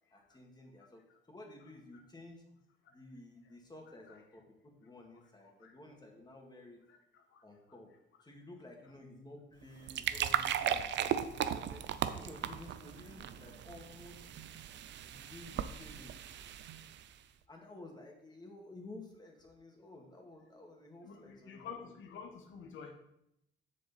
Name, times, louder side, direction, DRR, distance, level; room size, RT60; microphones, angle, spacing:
voice 1, 0.1-2.4 2.9-6.8 7.4-7.9 8.2-14.2 15.0-16.2 17.5-22.0, left 2 dB, 20° left, 1 dB, 2.1 m, -53 dB
voice 2, 6.9-7.4 21.0-22.9, left 6 dB, 75° left, 5 dB, 1.4 m, -49 dB
sound 1, 9.6-17.2, right 9 dB, 65° right, 0.6 m, -37 dB
7.4 x 6.6 x 4.2 m, 0.81 s
cardioid pair, 90°, 20 cm